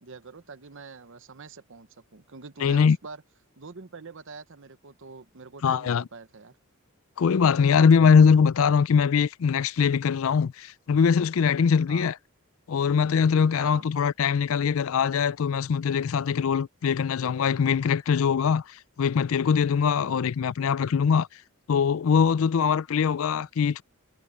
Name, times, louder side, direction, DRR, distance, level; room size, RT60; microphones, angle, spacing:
voice 1, 0.0-3.2 3.6-6.6 11.9-12.1 13.6-13.9 20.0-20.2, right 4 dB, 60° right, 0.9 m, -44 dB
voice 2, 2.6-3.0 5.6-6.0 7.2-12.1 12.7-18.6 19.0-21.3 21.7-23.8, left 6 dB, 65° left, 0.4 m, -22 dB
head